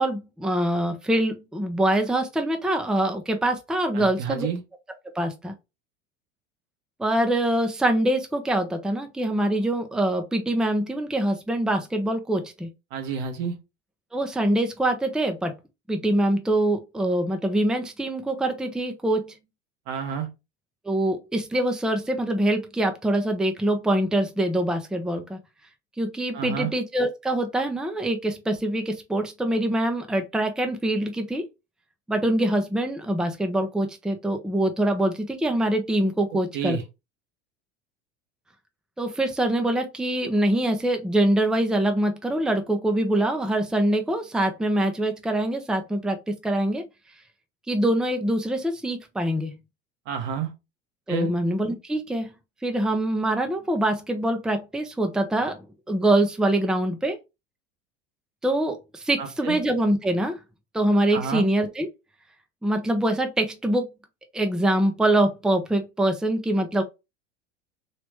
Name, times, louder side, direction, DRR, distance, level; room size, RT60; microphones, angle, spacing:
voice 1, 0.0-4.5 5.1-5.5 7.0-12.7 14.1-15.5 15.9-19.4 20.8-25.4 26.0-31.5 32.1-36.8 39.0-46.8 47.7-49.5 51.1-52.3 52.6-57.2 58.4-60.4 60.7-61.9 62.6-63.9 64.3-66.8, right 1 dB, ahead, 0.7 m, -24 dB
voice 2, 3.9-4.6 12.9-13.5 19.9-20.3 26.3-26.7 36.5-36.8 50.1-50.5 51.1-51.3 59.2-59.6 61.1-61.4, right 7 dB, 60° right, 1.2 m, -29 dB
3.2 x 2.9 x 3.3 m
hypercardioid pair, 80°, 34 cm